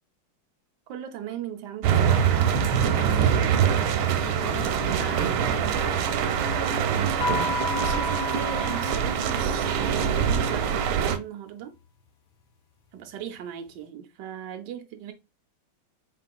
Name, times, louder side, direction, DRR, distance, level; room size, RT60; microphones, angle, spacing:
voice 1, 0.9-2.2 7.7-11.7 12.9-15.1, right 9 dB, 65° right, 1.2 m, -38 dB
sound 1, 1.8-11.2, right 8 dB, 90° right, 1.4 m, -24 dB
voice 2, 2.7-3.6 4.2-6.1, left 3 dB, 55° left, 1.5 m, -39 dB
sound 2, 7.2-9.9, left 5 dB, 75° left, 1.7 m, -32 dB
4.4 x 3.7 x 2.3 m
omnidirectional pair, 2.2 m